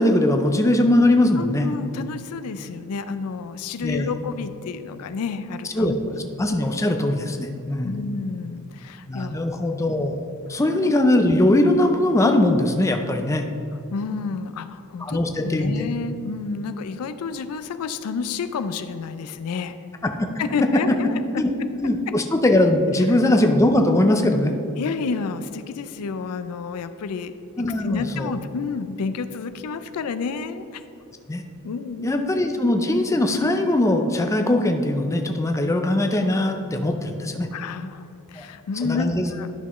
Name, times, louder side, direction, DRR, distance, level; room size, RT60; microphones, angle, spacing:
voice 1, 0.0-1.7 3.8-4.1 5.8-5.9 6.4-7.9 9.1-13.5 15.0-15.8 20.0-20.1 21.4-21.5 21.8-24.5 27.6-28.3 31.3-31.4 32.0-37.5 38.4-38.5 38.8-39.3, left 1 dB, 15° left, 4 dB, 0.4 m, -20 dB
voice 2, 1.4-5.9 7.8-9.4 13.9-19.8 20.4-21.4 22.1-22.2 23.1-23.2 24.8-30.8 31.6-32.1 37.5-39.5, left 5 dB, 80° left, 11 dB, 0.4 m, -30 dB
11.0 x 5.9 x 3.0 m, 2.7 s
head